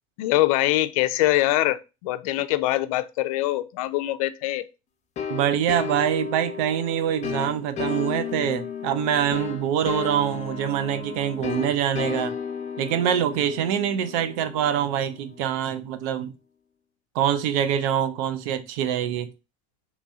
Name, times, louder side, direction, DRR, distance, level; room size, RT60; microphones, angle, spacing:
voice 1, 0.2-4.6, left 16 dB, 85° left, 0.4 m, -23 dB
sound 1, 5.2-15.6, left 6 dB, 40° left, 0.7 m, -34 dB
voice 2, 5.3-12.3 12.8-16.3 17.1-19.3, right 9 dB, 80° right, 0.5 m, -25 dB
3.0 x 2.8 x 3.5 m
supercardioid pair, 105°, 18 cm